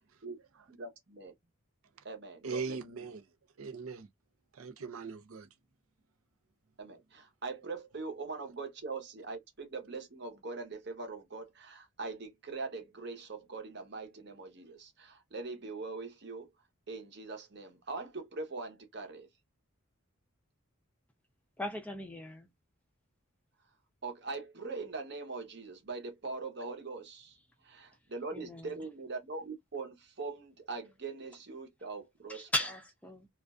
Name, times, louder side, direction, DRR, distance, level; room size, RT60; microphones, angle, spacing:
voice 1, 0.7-1.3 2.0-2.8 6.8-16.5 16.9-19.3 24.0-27.4 27.6-32.5, right 3 dB, 50° right, 0.8 m, -42 dB
voice 2, 2.4-3.2 3.6-4.1 4.5-5.5, right 5 dB, 80° right, 0.5 m, -39 dB
voice 3, 21.6-22.5 28.3-28.9 32.3-33.3, left 1 dB, 5° left, 0.4 m, -37 dB
2.4 x 2.3 x 2.3 m
head